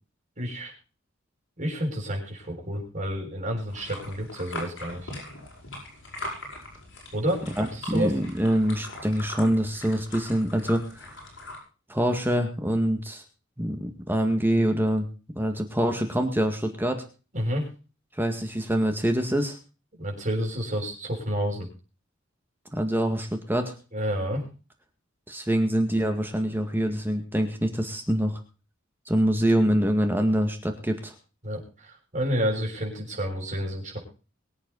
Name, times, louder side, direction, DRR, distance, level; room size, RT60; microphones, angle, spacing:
voice 1, 0.4-0.7 1.6-5.1 7.1-8.1 17.3-17.7 20.0-21.7 23.9-24.4 31.4-34.0, equal, 40° right, -1 dB, 6.4 m, -30 dB
sound 1, 3.7-11.6, left 1 dB, 65° left, 8.0 m, -40 dB
voice 2, 7.6-11.1 11.9-13.2 13.6-15.1 15.4-17.1 18.2-19.6 22.7-23.7 25.3-28.4 29.1-31.1, equal, 10° right, 5 dB, 2.0 m, -25 dB
23.5 x 8.5 x 4.1 m, 0.35 s
head